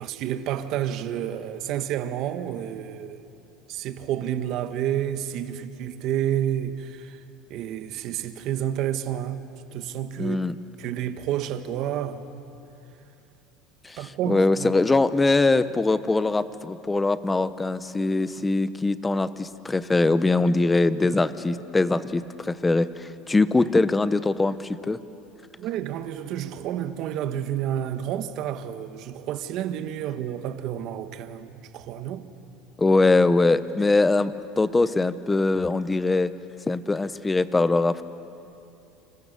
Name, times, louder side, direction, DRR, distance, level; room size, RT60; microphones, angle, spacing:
voice 1, 0.0-3.3 3.7-7.2 7.5-10.4 10.8-12.4 14.0-14.7 25.6-32.3, right 10 dB, 55° right, 1.4 m, -30 dB
voice 2, 10.2-10.6 13.8-25.0 32.8-36.3 36.7-38.0, left 3 dB, 10° left, 0.8 m, -22 dB
29.5 x 27.0 x 6.8 m
cardioid pair, 145°, 0 cm